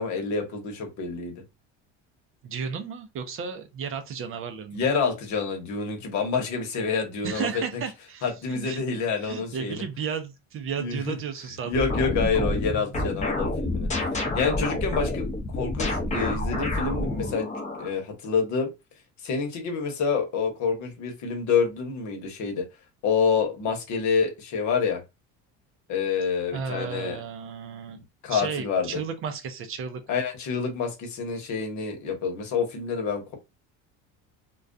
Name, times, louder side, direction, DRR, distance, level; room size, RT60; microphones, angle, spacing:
voice 1, 0.0-1.3 4.7-7.8 8.2-9.8 10.8-11.1 11.6-13.9 14.3-15.3 15.5-17.5 17.8-18.7 19.2-22.6 23.0-25.0 25.9-27.2 28.2-29.0 30.1-33.4, left 5 dB, 60° left, 1.0 m, -27 dB
voice 2, 2.4-4.8 7.2-8.8 9.2-11.8 26.5-28.0 28.3-30.0, right 6 dB, 40° right, 0.5 m, -33 dB
sound 1, 11.7-17.9, left 2 dB, 20° left, 0.7 m, -28 dB
2.3 x 2.3 x 2.5 m
cardioid pair, 120°, 33 cm